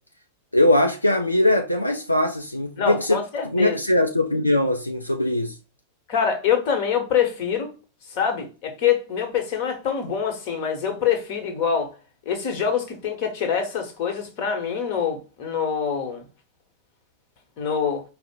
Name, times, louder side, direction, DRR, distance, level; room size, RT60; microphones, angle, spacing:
voice 1, 0.5-3.2 3.5-5.6, left 1 dB, 85° left, 0.4 m, -21 dB
voice 2, 2.8-3.8 6.1-7.7 8.1-11.9 12.2-16.2 17.6-18.0, left 7 dB, 45° left, 1.1 m, -25 dB
4.8 x 2.0 x 4.3 m
figure-of-eight pair, 90°, 0 cm